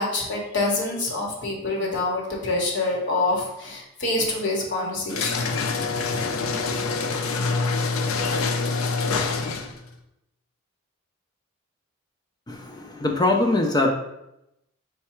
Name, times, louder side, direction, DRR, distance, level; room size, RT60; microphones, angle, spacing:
voice 1, 0.0-5.4, left 2 dB, 55° left, -2 dB, 1.0 m, -26 dB
sound 1, 5.1-9.8, left 4 dB, 75° left, 0.4 m, -25 dB
voice 2, 12.5-13.9, left 2 dB, 20° left, 2 dB, 0.4 m, -22 dB
4.6 x 2.2 x 4.3 m, 0.86 s
head